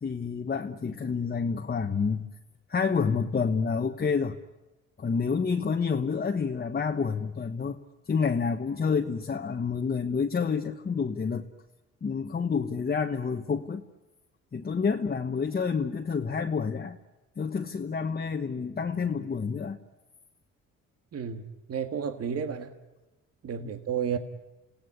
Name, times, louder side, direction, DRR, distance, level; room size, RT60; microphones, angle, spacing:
voice 1, 0.0-2.3 2.7-4.4 5.0-7.8 8.1-11.5 12.0-13.8 14.5-17.0 17.4-19.8 23.6-23.7, left 5 dB, 30° left, 4 dB, 1.3 m, -28 dB
voice 2, 21.1-21.4 21.7-22.7 23.4-24.2, right 7 dB, 55° right, 9 dB, 1.8 m, -31 dB
28.0 x 17.5 x 9.8 m, 1.1 s
cardioid pair, 90°, 30 cm